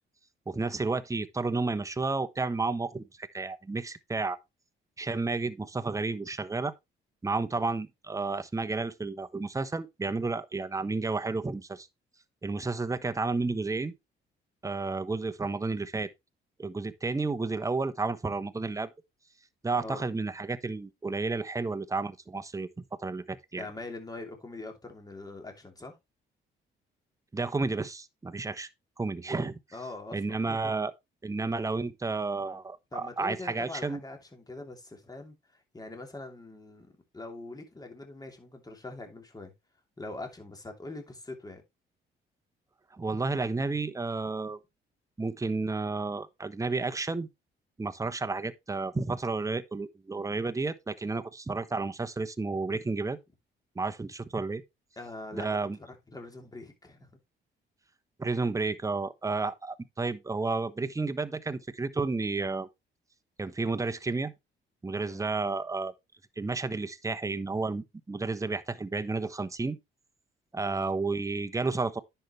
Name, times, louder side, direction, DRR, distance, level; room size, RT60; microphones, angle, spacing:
voice 1, 0.5-4.4 5.0-6.7 7.2-11.9 12.4-13.9 14.6-16.1 16.6-18.9 19.6-22.7 23.0-23.7 27.3-28.7 29.0-29.6 30.1-30.9 31.2-34.0 42.9-44.6 45.2-47.3 47.8-53.2 53.7-54.6 55.3-55.8 58.2-62.7 63.4-64.3 64.8-65.9 66.4-69.8 70.5-72.0, right 3 dB, 15° right, 1.0 m, -31 dB
voice 2, 23.5-25.9 29.7-30.7 32.9-39.5 40.0-41.6 55.0-57.1 65.0-65.2 70.6-70.8, left 2 dB, 20° left, 3.0 m, -43 dB
10.0 x 6.9 x 3.3 m
cardioid pair, 90°, 20 cm